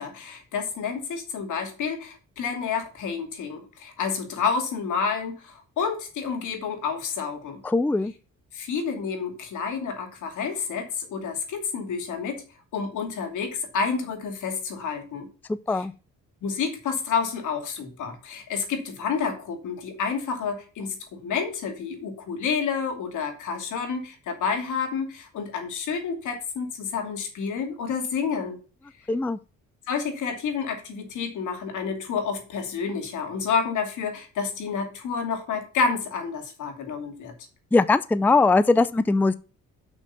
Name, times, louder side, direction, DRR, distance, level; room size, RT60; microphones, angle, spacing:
voice 1, 0.0-7.6 8.5-12.4 12.7-15.3 15.7-15.9 16.4-28.6 29.9-37.3, left 5 dB, 80° left, 2.6 m, -29 dB
voice 2, 7.6-8.1 15.5-15.9 29.1-29.4 37.7-39.3, left 3 dB, 5° left, 0.4 m, -21 dB
6.7 x 5.9 x 5.7 m
cardioid pair, 90°, 30 cm